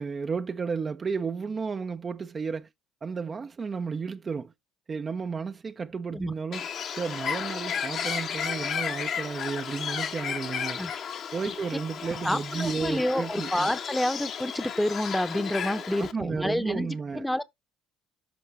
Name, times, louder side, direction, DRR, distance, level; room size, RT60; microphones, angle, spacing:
voice 1, 0.0-2.7 3.0-4.5 4.9-6.7 6.9-10.8 11.3-13.7 15.7-17.3, right 5 dB, 30° right, 0.5 m, -33 dB
Bird, 6.5-16.1, left 7 dB, 50° left, 1.1 m, -33 dB
voice 2, 12.2-17.4, left 1 dB, 5° left, 0.8 m, -28 dB
11.5 x 5.3 x 3.3 m
figure-of-eight pair, 55°, 0 cm